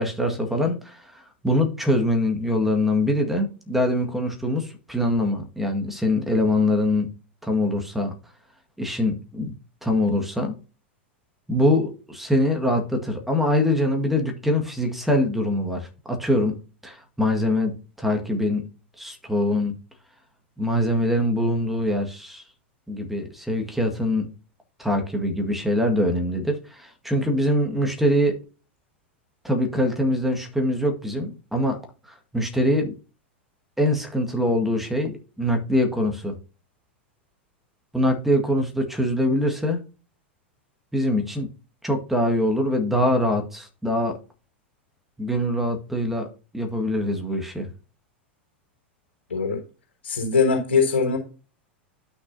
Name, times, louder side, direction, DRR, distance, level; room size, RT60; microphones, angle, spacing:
voice 1, 0.0-7.1 7.4-8.1 8.8-9.5 9.8-10.6 11.5-16.6 16.8-18.6 19.0-19.8 20.6-22.4 22.9-24.3 24.8-28.4 29.4-31.8 32.0-32.9 33.8-36.3 37.9-39.8 40.9-41.5 41.8-44.2 45.2-46.3 46.5-47.7, left 1 dB, 5° right, 3 dB, 1.8 m, -23 dB
voice 2, 49.3-49.6 50.0-51.2, left 5 dB, 70° left, 1 dB, 3.3 m, -21 dB
11.5 x 6.3 x 2.8 m, 0.34 s
figure-of-eight pair, 90°, 6 cm